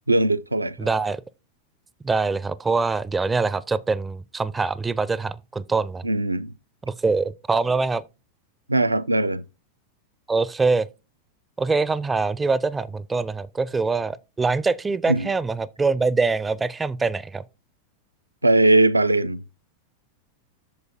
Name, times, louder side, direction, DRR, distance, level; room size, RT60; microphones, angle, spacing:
voice 1, 0.1-0.8 6.0-6.5 8.7-9.4 15.1-15.3 18.4-19.4, right 2 dB, 85° right, 0.4 m, -20 dB
voice 2, 0.8-1.2 2.0-6.0 6.8-8.0 10.3-10.9 11.6-17.4, right 4 dB, 15° right, 0.4 m, -24 dB
8.4 x 6.7 x 2.6 m
figure-of-eight pair, 90°, 0 cm